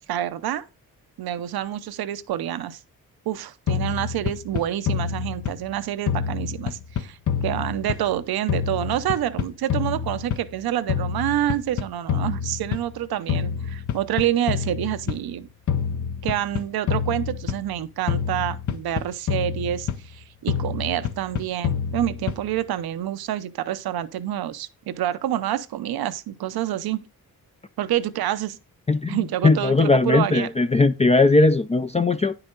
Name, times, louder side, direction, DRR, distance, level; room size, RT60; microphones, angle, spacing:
voice 1, 0.1-0.6 1.2-2.8 3.3-7.2 7.4-15.5 16.2-27.1 27.8-28.6 29.1-30.5, right 12 dB, 85° right, 0.8 m, -27 dB
sound 1, 3.7-5.8 6.1-8.2 8.5-10.6 10.9-13.0 13.3-15.3 15.7-17.8 18.1-20.2 20.5-22.6, left 8 dB, 55° left, 0.8 m, -27 dB
voice 2, 28.9-29.2 29.4-32.4, left 3 dB, 20° left, 0.4 m, -18 dB
9.9 x 5.8 x 3.8 m
cardioid pair, 90°, 36 cm